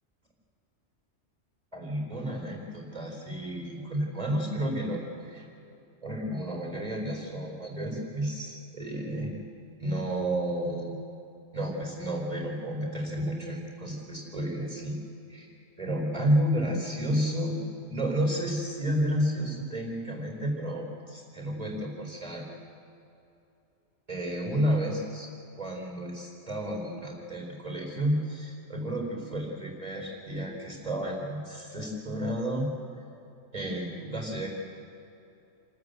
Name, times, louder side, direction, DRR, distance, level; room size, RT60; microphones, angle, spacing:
voice 1, 1.7-5.5 6.0-9.3 9.8-11.0 11.5-15.0 15.3-15.5 15.8-22.4 24.1-25.3 25.6-32.7 33.5-34.5, equal, 30° right, 1 dB, 4.3 m, -31 dB
28.5 x 13.5 x 8.1 m, 2.8 s
omnidirectional pair, 1.3 m